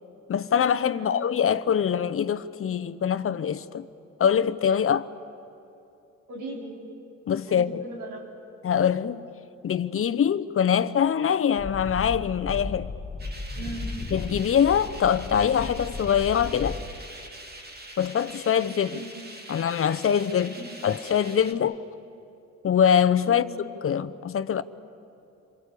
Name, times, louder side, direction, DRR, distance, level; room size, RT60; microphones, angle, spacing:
voice 1, 0.3-3.9 4.2-5.1 7.3-7.8 8.6-9.2 9.6-12.9 14.1-16.8 18.0-19.0 19.5-20.6 20.8-21.8 22.6-23.5 23.8-24.6, left 8 dB, 45° left, 0.8 m, -23 dB
voice 2, 0.9-1.3 6.3-6.8 7.5-8.3 13.5-14.1 18.9-19.2 20.6-20.8 23.3-23.6, right 2 dB, 85° right, 4.4 m, -39 dB
sound 1, 11.6-16.8, left 3 dB, 25° left, 1.4 m, -35 dB
sound 2, 13.2-21.5, right 1 dB, 30° right, 2.8 m, -44 dB
28.5 x 23.0 x 8.5 m
cardioid pair, 90°, 30 cm